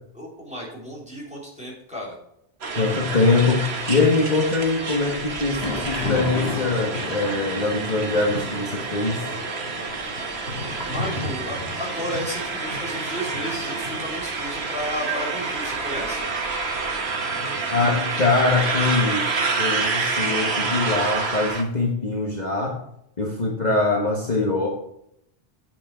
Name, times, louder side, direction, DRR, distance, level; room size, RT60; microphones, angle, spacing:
voice 1, 0.1-2.2 10.9-16.3, equal, 5° right, -5 dB, 3.6 m, -33 dB
sound 1, 2.6-21.6, right 4 dB, 70° right, 1.4 m, -28 dB
voice 2, 2.8-9.2 17.7-19.3 19.6-22.8 23.2-24.7, left 3 dB, 40° left, -2 dB, 1.4 m, -23 dB
Thunder / Rain, 5.6-21.6, left 3 dB, 60° left, 1.7 m, -36 dB
8.4 x 6.8 x 4.8 m, 0.75 s
omnidirectional pair, 1.1 m